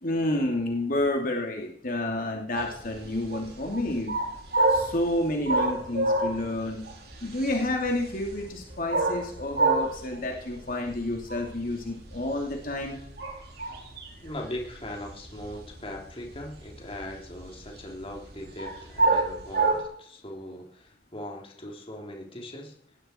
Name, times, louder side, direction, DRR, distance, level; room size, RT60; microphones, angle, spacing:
voice 1, 0.0-4.1 4.7-6.8 7.2-13.0, left 1 dB, 50° left, 1 dB, 2.7 m, -29 dB
sound 1, 2.6-19.8, right 2 dB, 65° right, 4.2 m, -28 dB
voice 2, 14.2-22.7, left 1 dB, 30° left, 1 dB, 3.2 m, -40 dB
19.0 x 16.0 x 4.5 m, 0.63 s
head